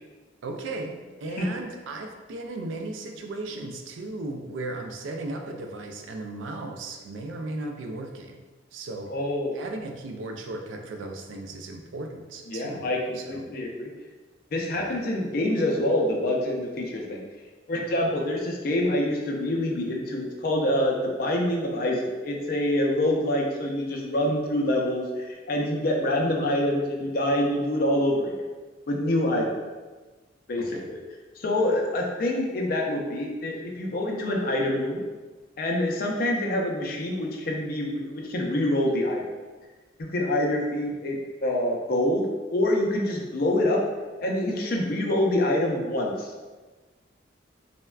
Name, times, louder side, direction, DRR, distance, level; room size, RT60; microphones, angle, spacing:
voice 1, 0.4-8.4 8.7-9.1 9.5-12.9 13.1-13.5 14.7-15.0 30.6-30.9, right 2 dB, 85° right, 4 dB, 0.3 m, -36 dB
voice 2, 9.1-9.6 12.5-13.9 14.5-17.2 17.7-28.3 28.9-29.6 30.5-31.0 31.4-35.0 35.6-39.2 40.0-41.2 41.4-43.8 44.2-46.3, left 1 dB, 50° left, 0 dB, 0.4 m, -26 dB
3.3 x 2.1 x 2.2 m, 1.3 s
head